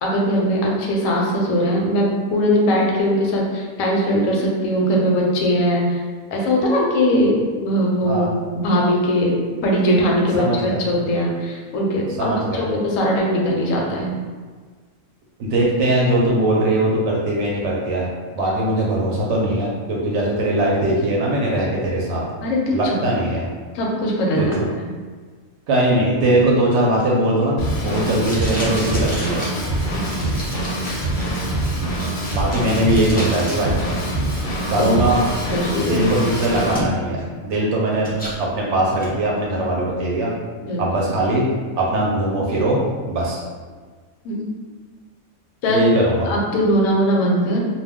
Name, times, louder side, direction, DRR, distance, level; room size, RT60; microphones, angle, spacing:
voice 1, 0.0-6.0 6.3-14.1 22.4-23.0 23.7-24.5 24.8-24.9 29.9-30.3 34.8-34.9 35.5-36.1 40.7-40.8 41.2-41.3 44.2-44.5 45.6-45.9 46.3-47.6, equal, 80° left, -2 dB, 1.0 m, -20 dB
voice 2, 10.3-10.8 12.2-12.6 15.4-18.1 18.4-22.2 22.7-23.5 24.4-24.7 25.7-29.4 32.3-33.8 34.7-35.2 35.8-38.1 38.4-40.3 40.8-41.5 41.8-43.4 45.7-46.3, right 1 dB, 65° right, -3 dB, 0.8 m, -20 dB
Packing tape duct tape, 26.3-33.8 34.1-35.1 35.6-35.7 36.0-37.2 37.6-38.4 38.8-39.1, right 1 dB, 15° left, 0.3 m, -33 dB
Drum kit / Drum, 27.6-36.8, right 1 dB, 50° left, 0.7 m, -24 dB
2.3 x 2.2 x 3.4 m, 1.5 s
omnidirectional pair, 1.4 m